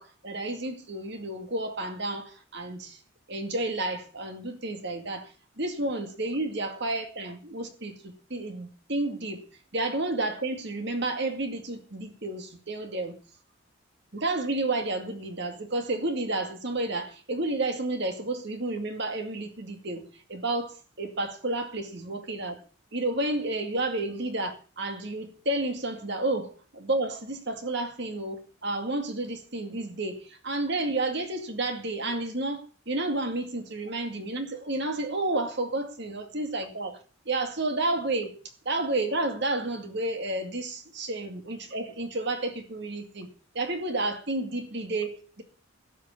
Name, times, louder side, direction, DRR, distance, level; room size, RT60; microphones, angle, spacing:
voice 1, 0.0-3.0 3.3-9.4 9.7-13.2 14.1-22.6 22.9-26.5 26.8-37.0 37.3-38.4 38.6-43.3 43.5-45.4, right 2 dB, 50° right, 5 dB, 2.2 m, -31 dB
12.5 x 8.6 x 8.5 m, 0.39 s
head